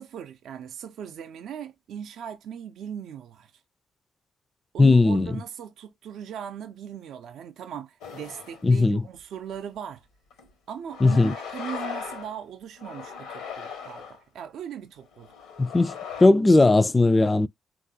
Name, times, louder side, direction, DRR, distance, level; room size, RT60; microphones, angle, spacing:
voice 1, 0.0-3.5 4.7-10.1 10.7-15.3, right 8 dB, 70° right, 0.4 m, -39 dB
voice 2, 4.8-5.3 8.6-9.0 11.0-11.3 15.6-15.9 16.2-17.5, left 2 dB, 25° left, 0.3 m, -18 dB
sound 1, 8.0-8.7 9.2-9.3 10.3-10.5 10.9-12.4 12.8-14.2 15.0-16.3, left 7 dB, 85° left, 1.0 m, -38 dB
3.8 x 2.5 x 2.7 m
hypercardioid pair, 45°, 0 cm